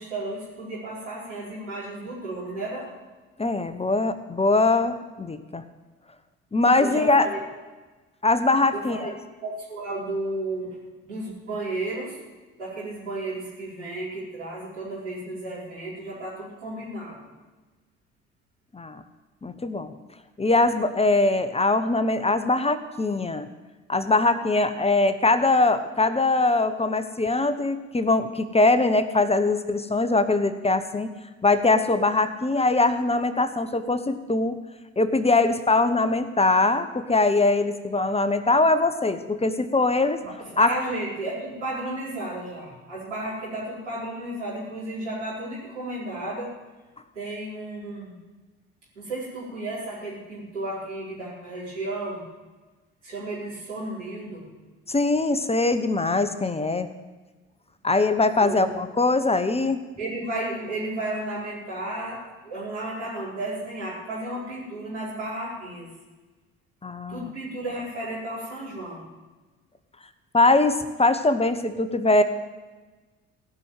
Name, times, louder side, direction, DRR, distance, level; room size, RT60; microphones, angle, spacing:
voice 1, 0.0-2.9 6.8-7.4 8.7-9.1 9.4-10.8 11.0-12.2 12.6-17.2 40.2-46.5 47.1-48.1 48.9-52.2 53.0-54.5 58.4-58.6 60.0-65.9 67.1-69.1, right 2 dB, 90° right, -8 dB, 4.6 m, -33 dB
voice 2, 3.4-5.6 6.5-7.3 8.2-9.1 18.7-19.0 19.4-19.9 20.4-23.5 23.9-31.1 31.4-34.6 35.0-40.2 40.6-40.7 54.9-56.9 57.8-59.8 66.8-67.3 70.3-72.2, left 2 dB, 20° left, 11 dB, 1.0 m, -22 dB
16.5 x 6.3 x 9.2 m, 1.2 s
figure-of-eight pair, 50°, 34 cm